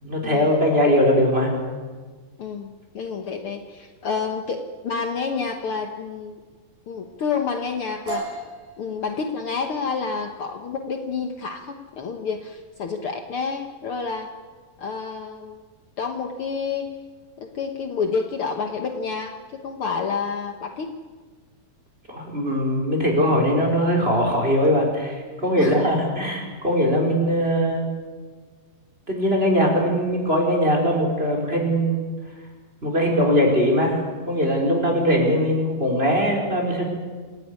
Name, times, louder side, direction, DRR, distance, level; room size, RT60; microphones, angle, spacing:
voice 1, 0.0-1.5 22.1-27.8 29.1-32.1 32.8-36.9, equal, 15° right, 0 dB, 4.8 m, -21 dB
voice 2, 2.4-6.4 6.9-8.4 8.8-14.3 14.8-15.6 16.0-16.9 17.4-20.9 25.6-25.9, left 5 dB, 75° left, 5 dB, 1.2 m, -29 dB
sound 1, 8.1-15.7, right 3 dB, 65° right, 8.4 m, -40 dB
27.5 x 16.5 x 9.7 m, 1.4 s
omnidirectional pair, 4.4 m